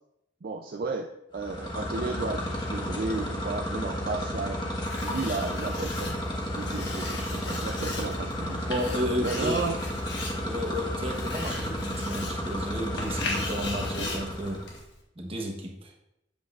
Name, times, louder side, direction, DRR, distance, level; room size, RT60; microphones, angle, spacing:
voice 1, 0.4-6.2 6.5-8.6 9.2-9.8, right 3 dB, 55° right, 2 dB, 0.4 m, -33 dB
sound 1, 1.3-14.7, equal, 25° left, 1.2 m, -32 dB
Writing, 4.8-15.0, left 2 dB, 70° left, 1.6 m, -39 dB
voice 2, 8.7-9.6 10.4-14.6 15.1-15.9, equal, 30° right, 1 dB, 1.1 m, -32 dB
8.1 x 7.6 x 2.4 m, 0.82 s
head